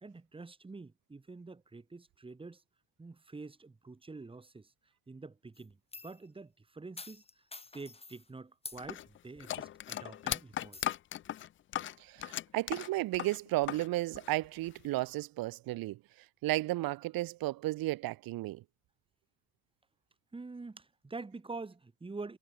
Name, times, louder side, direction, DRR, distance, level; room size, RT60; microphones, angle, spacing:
voice 1, 0.0-2.6 3.0-4.7 5.1-5.8 6.0-7.2 7.7-10.8 20.3-22.4, right 3 dB, 15° right, 1.0 m, -46 dB
sound 1, 5.5-6.2 7.0-8.3 8.6-8.8 9.4-9.5 9.9-10.2 10.7-10.9, left 3 dB, 15° left, 1.6 m, -48 dB
sound 2, 8.8-13.9 14.1-15.0, left 12 dB, 30° left, 0.4 m, -38 dB
voice 2, 12.0-16.0 16.4-18.6, right 18 dB, 55° right, 0.8 m, -33 dB
supercardioid pair, 80°, 41 cm